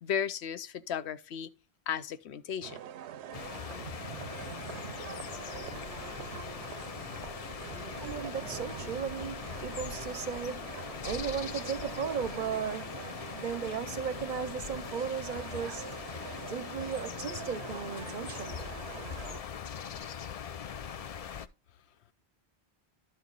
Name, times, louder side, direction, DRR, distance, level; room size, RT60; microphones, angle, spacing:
voice 1, 0.0-1.5 1.9-2.8, left 8 dB, 80° left, 0.9 m, -34 dB
sound 1, 2.6-19.4, right 10 dB, 90° right, 0.9 m, -45 dB
sound 2, 3.3-21.5, left 8 dB, 55° left, 0.4 m, -41 dB
voice 2, 8.0-13.1 13.3-16.2 16.5-18.7, right 7 dB, 55° right, 0.6 m, -36 dB
12.0 x 4.4 x 3.9 m
omnidirectional pair, 1.1 m